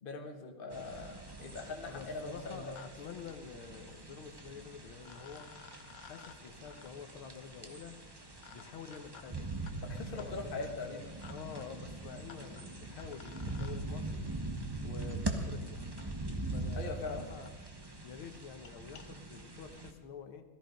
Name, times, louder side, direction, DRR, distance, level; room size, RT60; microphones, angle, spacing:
voice 1, 0.0-2.8 9.8-11.1 16.8-17.3, left 3 dB, 30° left, 3 dB, 1.4 m, -41 dB
sound 1, 0.7-0.8 1.1-1.5 2.3-2.9 3.1-3.2 4.5-4.6 5.0-13.7 15.1-15.2 16.0-16.1 16.7-16.8 17.0-17.1 17.5-17.6 17.8-18.0 18.4-19.0, left 7 dB, 55° left, 1.1 m, -57 dB
sound 2, 0.7-19.9, right 2 dB, 20° right, 0.7 m, -42 dB
voice 2, 1.9-5.5 6.0-7.9 8.5-9.5 10.2-10.5 11.3-14.3 14.8-15.9 16.5-17.5 18.0-20.4, left 6 dB, 80° left, 7 dB, 1.9 m, -48 dB
17.5 x 13.5 x 5.2 m, 1.3 s
omnidirectional pair, 2.3 m